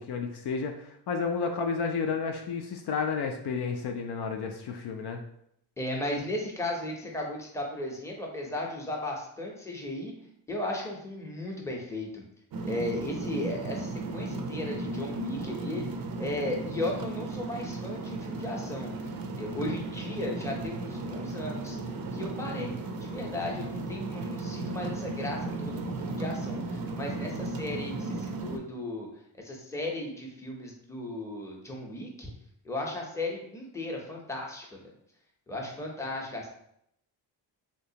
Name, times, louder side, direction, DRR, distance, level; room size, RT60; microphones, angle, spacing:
voice 1, 0.0-5.2, left 5 dB, 60° left, 4 dB, 0.5 m, -31 dB
voice 2, 5.8-10.2 10.5-12.2 12.6-15.8 16.2-18.9 19.4-21.8 22.1-29.1 29.3-32.3 32.6-34.9 35.5-36.5, left 1 dB, 5° left, -1 dB, 0.7 m, -36 dB
sound 1, 12.5-28.6, right 2 dB, 50° right, 0.5 m, -35 dB
3.3 x 2.9 x 2.8 m, 0.73 s
cardioid pair, 105°, 45 cm